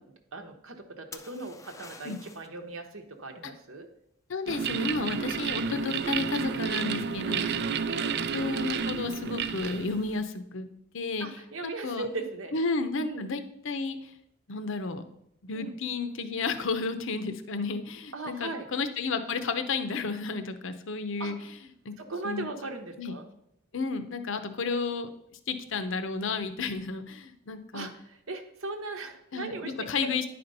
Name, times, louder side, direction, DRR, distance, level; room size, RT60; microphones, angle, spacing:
voice 1, 0.3-3.9 7.9-8.1 11.2-12.5 13.0-13.3 15.5-15.7 18.1-18.7 21.2-21.3 22.0-23.3 27.7-29.9, right 3 dB, 75° right, 4 dB, 1.0 m, -38 dB
sound 1, 1.1-2.6 6.2-6.7, left 4 dB, 15° left, 0.4 m, -48 dB
voice 2, 4.3-7.6 8.0-10.7 10.9-11.3 11.6-12.1 12.5-14.1 14.5-15.0 15.4-21.4 21.8-21.9 22.2-22.5 23.0-23.1 23.7-25.1 25.5-27.9 29.3-30.2, left 4 dB, 65° left, 10 dB, 0.7 m, -32 dB
sound 2, 4.5-10.2, right 6 dB, 55° right, 0.4 m, -31 dB
9.9 x 4.3 x 5.4 m, 0.75 s
head